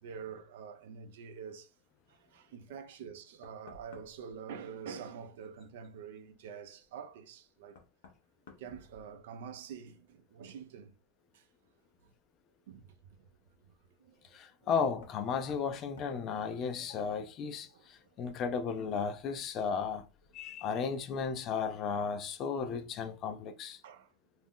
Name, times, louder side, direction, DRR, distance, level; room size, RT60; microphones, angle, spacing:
voice 1, 0.0-1.7 2.1-7.8 8.6-11.0 11.3-11.5 12.7-13.3 14.0-14.7 17.7-17.9 23.8-24.1, right 7 dB, 75° right, 0.4 m, -47 dB
Knock, 3.4-4.4 6.8-6.9 7.7-9.5 9.9-10.4 12.1-12.2 14.9-15.2 15.5-15.7 16.0-16.2, left 4 dB, 80° left, 0.6 m, -56 dB
voice 2, 14.3-20.1 20.3-23.8, left 6 dB, 40° left, 0.4 m, -34 dB
2.5 x 2.1 x 3.5 m
supercardioid pair, 120°, 0 cm